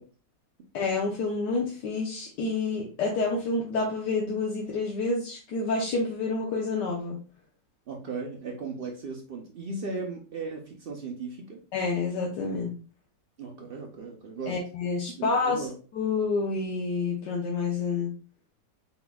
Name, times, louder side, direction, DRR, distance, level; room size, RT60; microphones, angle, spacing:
voice 1, 0.7-7.2 11.7-12.7 14.5-15.7 15.9-18.1, left 3 dB, 80° left, -2 dB, 1.4 m, -28 dB
voice 2, 7.9-11.6 13.4-14.6 15.2-15.7, right 4 dB, 70° right, 1 dB, 0.5 m, -36 dB
4.3 x 4.0 x 2.3 m, 0.37 s
omnidirectional pair, 1.8 m